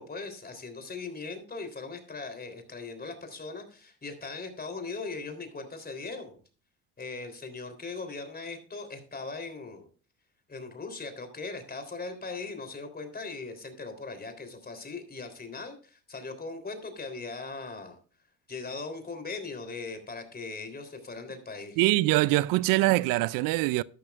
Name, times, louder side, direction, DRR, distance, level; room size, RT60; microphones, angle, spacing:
voice 1, 0.0-6.4 7.0-9.9 10.5-18.0 18.5-21.8, left 3 dB, 30° left, 3.5 m, -39 dB
voice 2, 21.8-23.8, right 19 dB, 85° right, 0.5 m, -23 dB
12.5 x 12.0 x 2.4 m
supercardioid pair, 75°, 33 cm